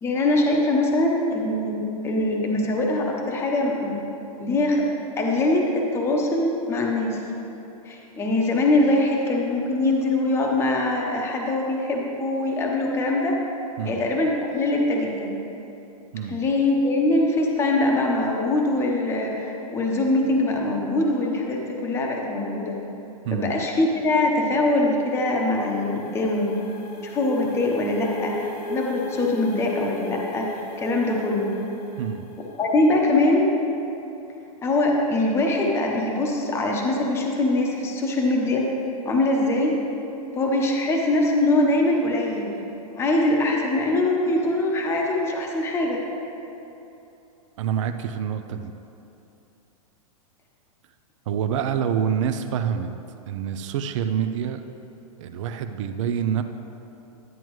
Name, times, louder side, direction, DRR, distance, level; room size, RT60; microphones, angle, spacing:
voice 1, 0.0-4.0 4.4-4.9 5.2-7.2 7.8-13.4 13.8-15.4 16.3-22.8 23.3-26.5 27.0-30.5 30.8-31.5 32.6-33.5 34.6-38.7 39.0-39.8 40.4-42.5 42.9-46.0, left 2 dB, 15° left, 0 dB, 0.8 m, -23 dB
sound 1, 24.4-33.1, left 2 dB, 85° left, 1.0 m, -36 dB
voice 2, 47.6-48.7 51.3-52.9 53.3-54.6 55.2-56.4, right 8 dB, 55° right, 8 dB, 0.5 m, -26 dB
11.0 x 9.3 x 3.1 m, 2.9 s
hypercardioid pair, 160°, 19 cm